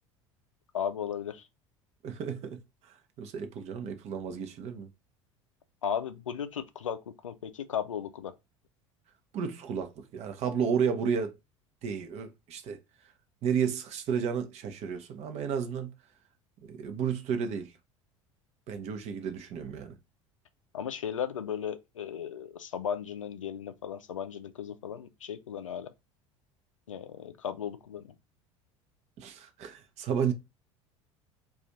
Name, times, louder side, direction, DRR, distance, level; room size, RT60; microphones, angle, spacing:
voice 1, 0.7-1.4 5.8-8.3 20.7-25.9 26.9-28.1, left 8 dB, 80° left, 0.4 m, -36 dB
voice 2, 2.0-4.9 9.3-11.4 11.8-12.8 13.4-15.9 16.6-17.7 18.7-19.9 29.2-30.3, right 7 dB, 40° right, 0.7 m, -32 dB
2.5 x 2.4 x 4.0 m
figure-of-eight pair, 70°, 16 cm